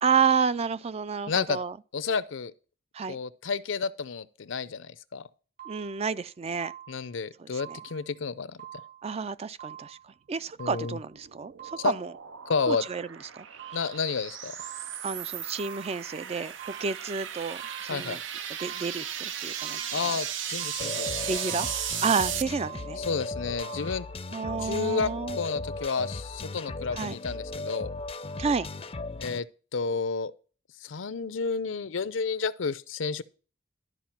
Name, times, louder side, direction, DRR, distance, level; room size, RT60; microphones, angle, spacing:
voice 1, 0.0-1.8 2.9-3.2 5.7-6.7 7.4-7.8 9.0-11.5 11.8-12.1 12.7-13.1 13.3-13.5 15.0-18.2 18.6-20.1 21.3-21.7 22.0-23.0 24.3-25.4 27.0-27.2 28.4-28.7, right 5 dB, 35° right, 0.4 m, -30 dB
voice 2, 1.3-1.6 1.9-2.5 3.1-5.3 6.9-8.6 10.6-11.0 11.8-11.9 12.5-12.9 13.7-14.6 17.9-18.2 19.9-21.3 23.0-24.1 24.6-27.9 29.2-29.5 29.7-30.3 30.8-33.2, left 5 dB, 80° left, 0.6 m, -31 dB
sound 1, 5.6-6.2 6.6-7.2 7.6-8.2 8.6-9.2 9.6-10.2 10.6-11.2 11.6-12.2 12.6-13.2 13.6-14.2 14.6-15.2 15.6-16.2 16.6-17.2 17.6-18.2 18.6-19.2 19.6-20.2 20.6-21.2 21.6-22.2 22.6-23.2 23.6-24.2 24.6-24.7, right 11 dB, 55° right, 4.7 m, -46 dB
sound 2, 10.9-22.4, right 9 dB, 75° right, 0.6 m, -36 dB
sound 3, 20.8-29.4, left 2 dB, 30° left, 0.5 m, -37 dB
12.5 x 4.8 x 5.9 m
head